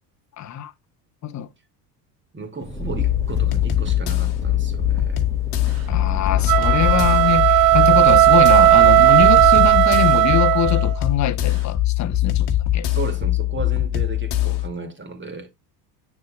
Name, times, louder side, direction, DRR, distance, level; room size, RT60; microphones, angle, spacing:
voice 1, 0.4-0.7 1.2-1.5 5.9-12.9, left 11 dB, 35° left, 1.0 m, -23 dB
voice 2, 2.3-5.2 6.9-7.0 12.9-15.5, right 3 dB, 25° right, 2.4 m, -34 dB
Engine, 2.6-9.7, left 2 dB, 5° left, 2.0 m, -31 dB
sound 1, 3.0-14.7, left 14 dB, 50° left, 1.4 m, -22 dB
sound 2, 6.4-10.9, right 17 dB, 45° right, 0.6 m, -15 dB
8.7 x 6.5 x 2.3 m
hypercardioid pair, 75°, 49 cm